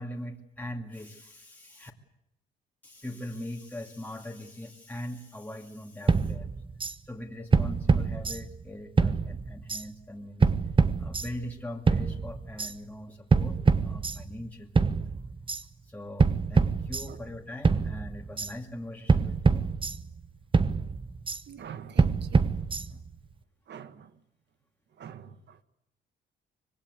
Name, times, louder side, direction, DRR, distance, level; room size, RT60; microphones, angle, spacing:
voice 1, 0.0-1.9 2.8-6.5 7.1-10.5 11.0-15.0 15.8-19.6 22.9-23.0, left 1 dB, 10° left, 0 dB, 2.4 m, -41 dB
sound 1, 6.1-6.9 7.5-8.7 9.0-9.8 10.4-11.5 11.9-12.7 13.3-14.5 14.8-15.6 16.2-17.4 17.6-18.5 19.1-20.3 20.5-21.4 22.0-23.1, right 4 dB, 25° right, 1.0 m, -25 dB
voice 2, 21.5-22.5 23.7-24.1 25.0-25.6, right 8 dB, 60° right, 11 dB, 1.5 m, -44 dB
25.0 x 19.5 x 8.3 m, 0.86 s
cardioid pair, 90°, 20 cm